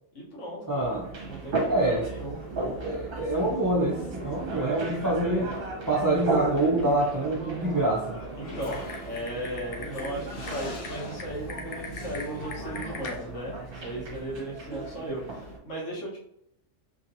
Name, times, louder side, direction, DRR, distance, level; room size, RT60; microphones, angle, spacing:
voice 1, 0.1-2.4 8.4-13.5 13.8-16.2, right 1 dB, 75° left, -4 dB, 1.4 m, -36 dB
voice 2, 0.7-1.0 1.7-2.1 2.8-5.5 5.9-8.2, right 2 dB, 35° right, -3 dB, 0.3 m, -26 dB
sound 1, 0.8-15.6, right 2 dB, 55° right, 0.9 m, -36 dB
Typing, 8.4-13.2, left 4 dB, 60° left, 0.7 m, -41 dB
3.0 x 2.8 x 2.6 m, 0.75 s
omnidirectional pair, 1.3 m